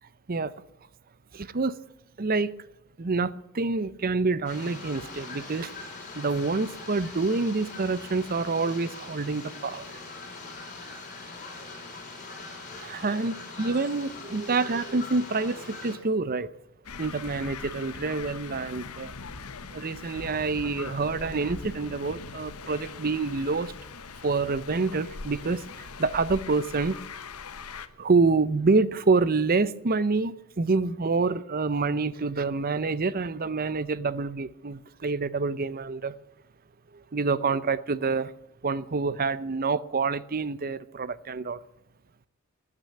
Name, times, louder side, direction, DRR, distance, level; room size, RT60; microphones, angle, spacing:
voice 1, 1.3-1.8 2.2-2.5 3.0-5.7 6.1-9.8 10.4-10.5 12.7-16.5 17.0-19.1 19.7-23.7 24.2-27.0 28.0-36.1 37.1-38.3 38.6-41.6, right 4 dB, 40° right, 0.7 m, -27 dB
sound 1, 4.5-16.0, left 3 dB, 35° left, 6.6 m, -42 dB
sound 2, 16.8-27.9, left 4 dB, 85° left, 1.1 m, -41 dB
15.5 x 9.8 x 8.3 m
head